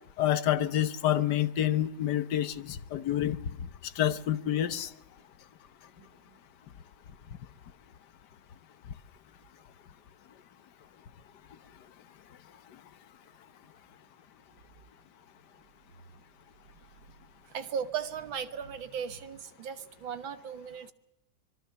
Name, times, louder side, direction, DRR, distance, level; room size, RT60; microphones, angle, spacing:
voice 1, 0.2-3.4 4.0-4.9, left 11 dB, 65° left, 1.6 m, -28 dB
voice 2, 6.0-6.4 17.5-20.9, right 7 dB, 85° right, 2.0 m, -37 dB
25.5 x 22.5 x 6.9 m
omnidirectional pair, 2.1 m